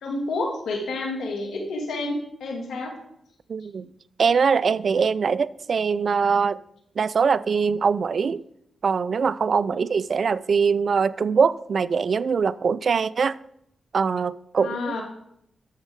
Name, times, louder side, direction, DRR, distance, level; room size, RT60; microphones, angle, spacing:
voice 1, 0.0-2.9 9.7-9.8 12.9-13.1 14.6-15.0, left 2 dB, 80° left, 2.0 m, -30 dB
voice 2, 3.5-3.9 4.2-6.6 7.0-8.4 8.8-13.4 13.9-15.0, right 5 dB, 65° right, 0.3 m, -22 dB
12.0 x 7.3 x 3.5 m
supercardioid pair, 45°, 0 cm